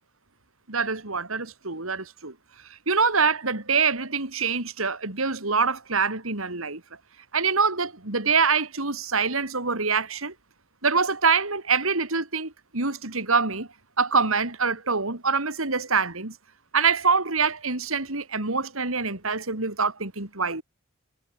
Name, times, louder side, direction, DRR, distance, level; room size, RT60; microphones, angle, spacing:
voice 1, 0.7-2.3 2.9-6.8 7.3-10.3 10.8-13.7 14.0-16.4 16.7-20.6, right 5 dB, 80° right, 3.8 m, -25 dB
head